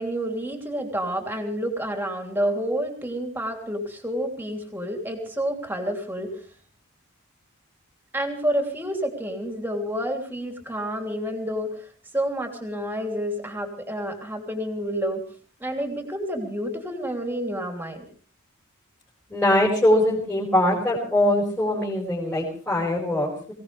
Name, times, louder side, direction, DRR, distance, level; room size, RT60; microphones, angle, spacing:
voice 1, 0.0-6.4 8.1-15.2 15.6-18.0, equal, 10° right, 3 dB, 3.0 m, -29 dB
voice 2, 19.3-23.5, left 1 dB, 10° left, -6 dB, 4.9 m, -22 dB
24.0 x 17.0 x 3.4 m, 0.42 s
head